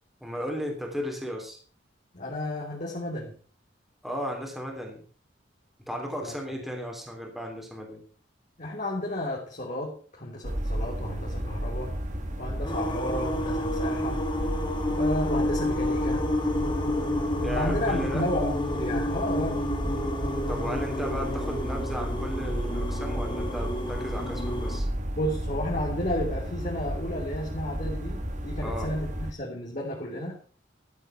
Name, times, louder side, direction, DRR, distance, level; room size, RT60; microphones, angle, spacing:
voice 1, 0.2-1.6 4.0-5.0 5.9-8.0 17.4-18.2 20.5-24.9 28.6-28.9, equal, ahead, 1 dB, 3.3 m, -35 dB
voice 2, 2.1-3.3 6.2-6.3 8.6-11.9 12.4-14.2 15.0-16.2 17.5-19.6 25.2-30.4, left 1 dB, 40° left, -3 dB, 3.1 m, -32 dB
sound 1, 10.4-29.3, equal, 40° right, 1.7 m, -33 dB
sound 2, 12.6-24.8, left 1 dB, 25° left, 2.2 m, -30 dB
13.5 x 8.3 x 5.7 m, 0.41 s
head